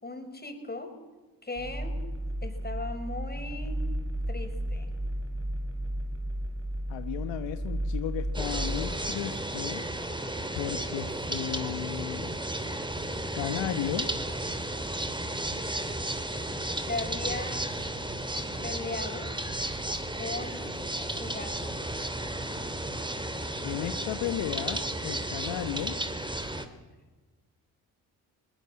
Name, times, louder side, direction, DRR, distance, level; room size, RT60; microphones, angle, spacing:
voice 1, 0.0-0.9 1.4-1.9 2.4-3.8 4.3-4.9 16.8-17.8 18.6-19.3 20.2-20.7 21.2-21.7, left 3 dB, 20° left, 5 dB, 5.9 m, -37 dB
sound 1, 1.6-9.0, right 1 dB, 30° right, 4.6 m, -33 dB
voice 2, 6.9-9.8 10.6-12.4 13.3-14.1 23.6-25.9, left 11 dB, 75° left, 9 dB, 1.3 m, -34 dB
sound 2, 8.3-26.7, right 1 dB, 10° right, 2.9 m, -33 dB
21.5 x 20.0 x 7.7 m, 1.3 s
supercardioid pair, 55°, 44 cm